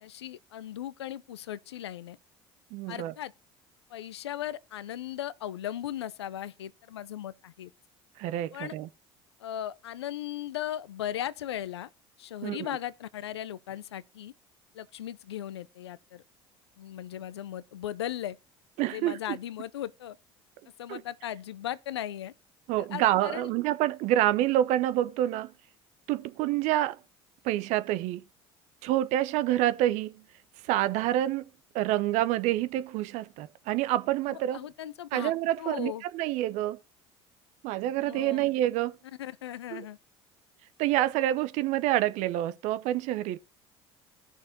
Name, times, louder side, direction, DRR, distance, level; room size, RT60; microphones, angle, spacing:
voice 1, 0.0-2.2 2.9-3.3 3.9-7.7 8.5-8.7 9.4-11.9 12.2-14.3 14.7-16.2 16.8-18.4 18.9-20.2 20.8-22.3 22.8-23.5 34.3-36.0 38.0-38.5 39.2-40.0, left 11 dB, 85° left, 0.5 m, -37 dB
voice 2, 2.7-3.1 8.2-8.9 12.4-12.7 18.8-19.4 20.9-21.0 22.7-25.5 26.1-27.0 27.4-28.2 28.8-30.2 30.7-31.5 31.7-34.7 35.1-36.8 37.6-38.9 39.7-39.8 40.8-43.4, right 14 dB, 60° right, 0.7 m, -27 dB
18.5 x 6.4 x 2.8 m
hypercardioid pair, 65°, 14 cm